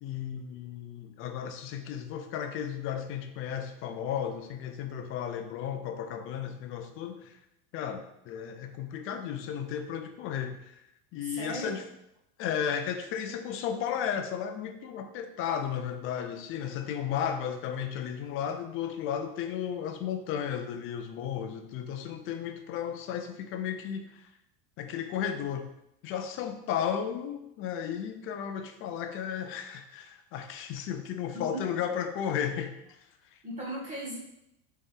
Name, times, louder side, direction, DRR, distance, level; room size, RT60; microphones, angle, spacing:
voice 1, 0.0-7.3 7.7-10.8 11.1-11.8 12.4-24.3 24.8-25.7 26.0-32.8, left 8 dB, 35° left, 7 dB, 0.5 m, -34 dB
voice 2, 11.2-11.8 31.3-31.6 33.4-34.2, right 1 dB, 20° right, -6 dB, 2.1 m, -37 dB
7.0 x 4.3 x 3.6 m, 0.82 s
cardioid pair, 170°, 40 cm